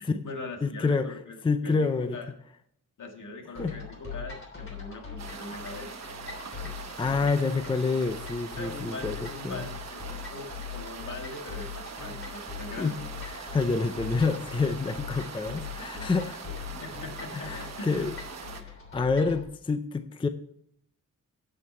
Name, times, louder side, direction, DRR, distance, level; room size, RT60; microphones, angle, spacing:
voice 1, 0.0-1.4 1.6-2.3 3.0-6.0 8.6-13.0 16.7-18.1, left 3 dB, 70° left, 3 dB, 2.0 m, -41 dB
voice 2, 0.6-1.2 1.4-2.2 3.6-3.8 7.0-9.7 12.8-13.0 13.3-16.4 17.3-18.1 18.6-20.3, left 4 dB, 15° left, 10 dB, 0.4 m, -28 dB
sound 1, 3.5-19.4, left 6 dB, 40° left, 3.3 m, -41 dB
sound 2, 5.2-18.6, right 5 dB, 55° right, 1.1 m, -42 dB
9.5 x 7.8 x 4.3 m, 0.69 s
wide cardioid pair, 175°, 32 cm